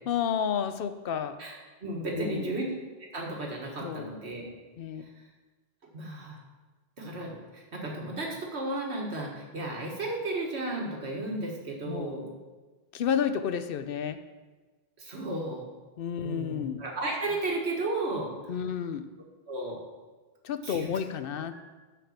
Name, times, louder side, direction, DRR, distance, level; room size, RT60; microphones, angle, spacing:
voice 1, 0.1-1.4 2.1-2.5 3.8-4.1 4.8-5.1 11.9-12.2 12.9-14.2 16.0-16.8 18.5-19.1 20.4-21.7, left 8 dB, 65° left, 11 dB, 0.8 m, -31 dB
voice 2, 1.4-2.7 3.0-4.5 5.0-5.1 5.9-6.4 7.0-12.3 15.0-15.7 16.2-18.3 19.5-19.8 20.6-20.9, right 2 dB, 85° right, -1 dB, 1.9 m, -34 dB
6.7 x 6.0 x 7.3 m, 1.3 s
omnidirectional pair, 1.1 m